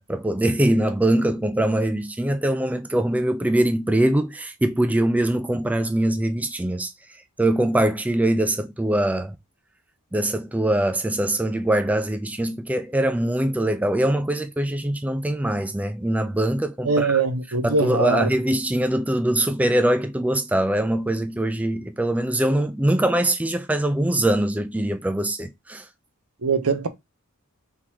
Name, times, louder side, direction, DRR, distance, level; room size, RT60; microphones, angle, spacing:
voice 1, 0.0-6.9 7.4-9.3 10.1-17.1 17.6-25.8, right 1 dB, 5° right, 0.3 m, -22 dB
voice 2, 16.8-18.3 26.4-26.9, right 4 dB, 80° right, 0.8 m, -22 dB
3.7 x 2.9 x 4.6 m
head